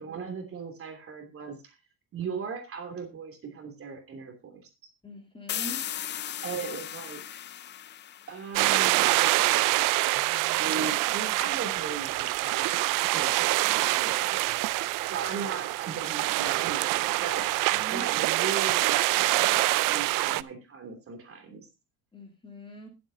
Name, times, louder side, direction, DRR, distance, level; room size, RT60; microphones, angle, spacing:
voice 1, 0.0-1.8 2.1-4.7 6.4-7.2 8.3-9.8 10.6-12.7 13.1-17.5 17.9-21.7, right 5 dB, 35° right, 5 dB, 3.1 m, -38 dB
voice 2, 5.0-5.8 17.7-18.1 22.1-22.9, right 1 dB, 15° left, 2 dB, 3.1 m, -42 dB
sound 1, 5.5-9.1, left 10 dB, 30° left, 0.5 m, -37 dB
sound 2, 8.5-20.4, right 19 dB, 60° right, 0.5 m, -25 dB
20.5 x 8.1 x 2.8 m, 0.26 s
cardioid pair, 130°, 36 cm